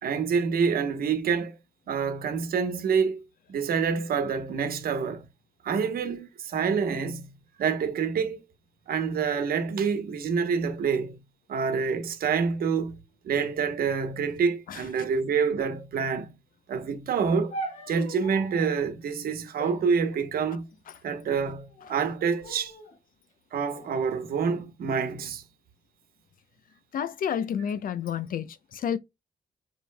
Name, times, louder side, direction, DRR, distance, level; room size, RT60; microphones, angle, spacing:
voice 1, 0.0-1.6 1.9-3.2 3.5-5.3 5.6-8.4 8.9-11.2 11.5-12.9 13.2-16.3 16.7-17.5 17.9-20.7 21.0-22.7 23.5-25.4, right 6 dB, 85° right, 1.1 m, -27 dB
sound 1, 17.5-18.8 19.6-20.8 21.6-22.0 22.4-23.0 23.7-24.7, right 1 dB, 50° left, 1.3 m, -41 dB
voice 2, 26.9-29.0, left 8 dB, 70° left, 0.6 m, -30 dB
5.3 x 4.4 x 2.2 m
wide cardioid pair, 160°, 15 cm